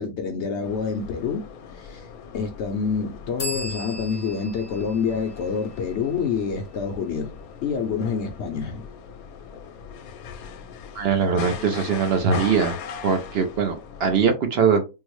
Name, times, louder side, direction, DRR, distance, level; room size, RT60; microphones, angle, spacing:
voice 1, 0.0-2.1 2.3-7.3 7.6-8.9, left 6 dB, 65° left, 0.7 m, -27 dB
sound 1, 0.6-14.3, left 6 dB, 85° left, 1.0 m, -40 dB
sound 2, 3.4-6.9, left 1 dB, 25° left, 0.6 m, -38 dB
voice 2, 10.9-12.8 13.0-14.8, right 6 dB, 65° right, 0.6 m, -21 dB
3.7 x 2.0 x 3.0 m
omnidirectional pair, 1.5 m